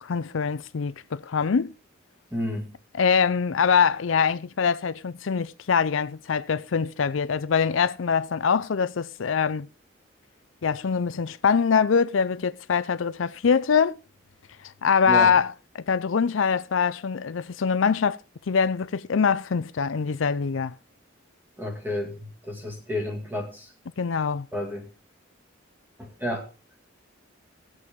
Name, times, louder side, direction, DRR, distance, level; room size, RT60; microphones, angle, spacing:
voice 1, 0.0-1.7 2.9-9.7 10.6-14.0 14.8-18.2 18.5-20.7 24.0-24.5, left 6 dB, 80° left, 0.5 m, -23 dB
voice 2, 2.3-2.7 15.1-15.3 21.6-23.7 24.5-24.9 26.0-26.4, left 1 dB, 10° right, 2.2 m, -31 dB
19.0 x 7.9 x 3.6 m
head